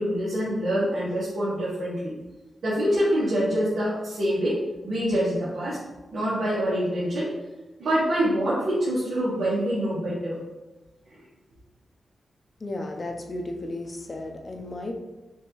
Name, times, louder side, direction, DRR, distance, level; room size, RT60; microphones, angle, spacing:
voice 1, 0.0-2.1 2.6-4.6 4.8-5.8 6.1-7.3 7.8-10.4 11.1-11.2, equal, 75° right, -10 dB, 1.5 m, -25 dB
voice 2, 12.6-14.9, left 2 dB, 35° left, 3 dB, 0.6 m, -34 dB
6.2 x 2.8 x 3.0 m, 1.1 s
wide cardioid pair, 125°, 0 cm